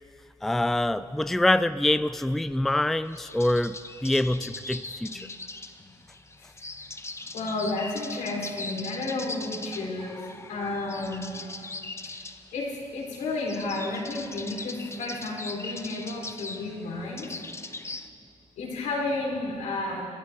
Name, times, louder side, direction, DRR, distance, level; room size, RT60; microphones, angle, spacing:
voice 1, 0.4-3.8 4.0-5.3, left 1 dB, ahead, 13 dB, 0.4 m, -25 dB
sound 1, 3.0-18.1, left 2 dB, 20° left, 1.0 m, -40 dB
voice 2, 7.3-11.4 12.5-17.3 18.6-20.1, left 2 dB, 80° left, -3 dB, 3.8 m, -32 dB
23.5 x 13.0 x 3.6 m, 2.4 s
supercardioid pair, 65°, 13 cm